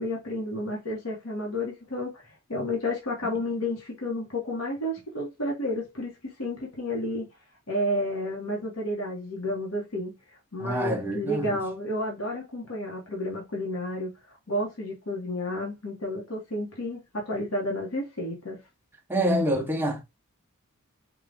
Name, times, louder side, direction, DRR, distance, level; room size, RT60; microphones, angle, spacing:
voice 1, 0.0-2.2 2.5-7.3 7.7-10.1 10.5-14.1 14.5-18.6, left 1 dB, 70° left, 1.1 m, -31 dB
voice 2, 10.6-11.6 19.1-20.0, right 1 dB, 10° right, 0.6 m, -27 dB
3.8 x 2.3 x 3.3 m
head